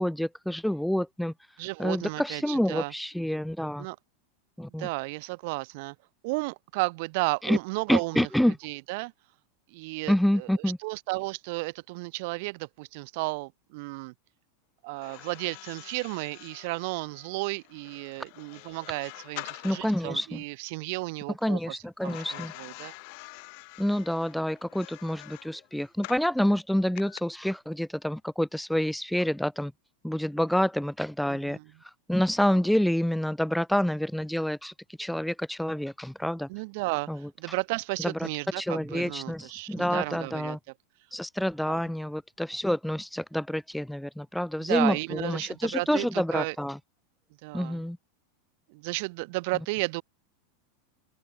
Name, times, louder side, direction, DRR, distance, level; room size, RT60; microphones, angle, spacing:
voice 1, 0.0-1.3 1.8-3.9 4.6-4.9 7.4-7.6 7.9-8.6 10.1-10.8 19.6-20.4 21.4-22.5 23.8-29.7 30.0-31.6 32.1-34.7 35.0-36.5 37.1-37.2 38.0-38.1 38.6-40.6 41.1-46.8 47.5-48.0, equal, ahead, 0.4 m, -28 dB
voice 2, 1.6-2.9 3.8-4.0 4.8-5.9 6.2-9.1 9.7-10.5 10.8-14.1 14.8-21.7 22.0-22.9 31.3-31.7 36.5-37.1 37.4-40.6 41.7-41.8 44.6-46.6 47.4-47.8 48.7-50.0, right 27 dB, 60° right, 1.1 m, -33 dB
sound 1, 14.9-20.1 22.0-26.3 27.0-27.2, left 36 dB, 60° left, 6.5 m, -46 dB
open air
hypercardioid pair, 115°, 0 cm